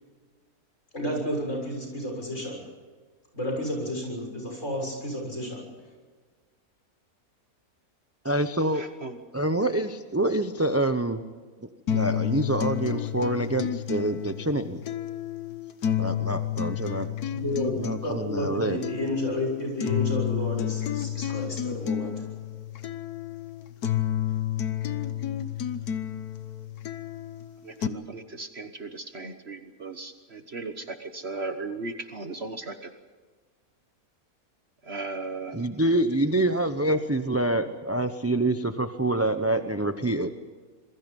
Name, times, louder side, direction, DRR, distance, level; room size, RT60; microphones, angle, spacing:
voice 1, 0.9-2.6 3.3-5.6 17.3-22.1, left 1 dB, 50° left, 1 dB, 7.3 m, -31 dB
voice 2, 8.2-8.8 9.3-11.2 11.9-14.8 16.0-17.3 17.8-18.8 35.5-40.3, right 1 dB, 15° right, 8 dB, 0.7 m, -26 dB
voice 3, 8.7-9.2 27.6-32.9 34.8-35.7, right 3 dB, 45° right, 8 dB, 1.4 m, -37 dB
sound 1, 11.9-27.9, left 10 dB, 85° left, 1.5 m, -31 dB
26.5 x 22.5 x 5.4 m, 1.4 s
omnidirectional pair, 1.6 m